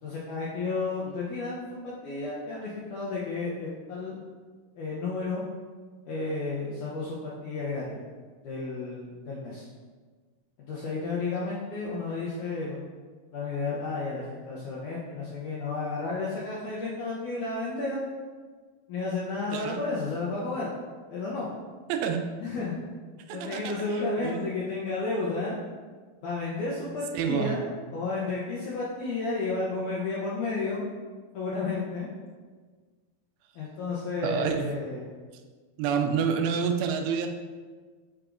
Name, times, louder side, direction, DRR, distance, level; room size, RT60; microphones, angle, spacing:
voice 1, 0.0-4.1 4.8-5.4 6.1-8.0 8.4-9.7 10.6-12.9 13.3-18.0 18.9-20.7 21.1-21.5 22.4-22.7 23.3-25.6 26.2-27.7 27.9-30.9 31.3-32.1 33.6-35.1, left 3 dB, 75° left, -6 dB, 1.9 m, -32 dB
voice 2, 21.9-22.3 23.3-23.8 24.2-24.5 27.1-27.6 34.2-34.7 35.8-37.3, right 7 dB, 90° right, 6 dB, 2.4 m, -28 dB
7.8 x 4.8 x 2.5 m, 1.5 s
omnidirectional pair, 4.2 m